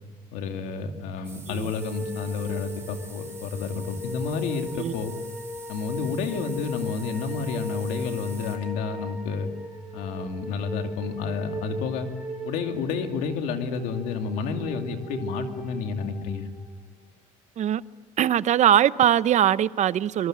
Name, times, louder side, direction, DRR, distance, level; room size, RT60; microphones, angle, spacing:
voice 1, 0.3-5.1 5.7-9.5 9.9-12.1 12.4-16.5, left 5 dB, 90° left, 2.6 m, -30 dB
sound 1, 1.2-8.6, right 3 dB, 20° right, 6.8 m, -46 dB
sound 2, 1.8-16.9, equal, ahead, 6.1 m, -38 dB
voice 2, 18.2-20.3, right 10 dB, 55° right, 0.7 m, -21 dB
24.5 x 23.5 x 7.7 m
cardioid pair, 95°, 14 cm